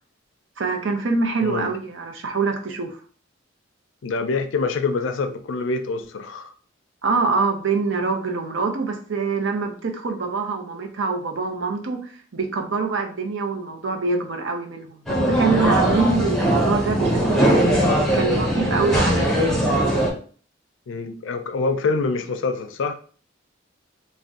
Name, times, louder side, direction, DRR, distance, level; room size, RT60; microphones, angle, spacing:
voice 1, 0.6-3.0 7.0-17.8 18.1-19.5, right 4 dB, 70° right, 4 dB, 0.6 m, -25 dB
voice 2, 1.4-1.7 4.0-6.5 20.9-22.9, left 4 dB, 75° left, 8 dB, 0.4 m, -25 dB
sound 1, 15.1-20.1, right 1 dB, ahead, 0.7 m, -20 dB
2.5 x 2.1 x 3.5 m, 0.42 s
head